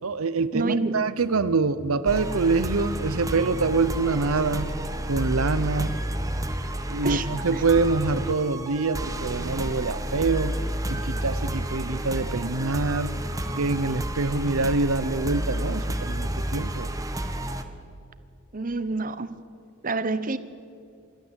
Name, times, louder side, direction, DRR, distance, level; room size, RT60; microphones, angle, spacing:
voice 1, 0.0-4.7 5.1-6.0 6.9-10.6 10.9-13.1 13.5-16.9, right 3 dB, 85° right, 14 dB, 0.8 m, -25 dB
voice 2, 0.5-1.0 7.0-7.3 11.9-12.0 18.5-19.3 19.8-20.4, right 3 dB, 40° right, 13 dB, 0.9 m, -27 dB
sound 1, 2.1-17.6, right 1 dB, 15° right, 1.1 m, -30 dB
26.5 x 12.5 x 8.2 m, 2.5 s
head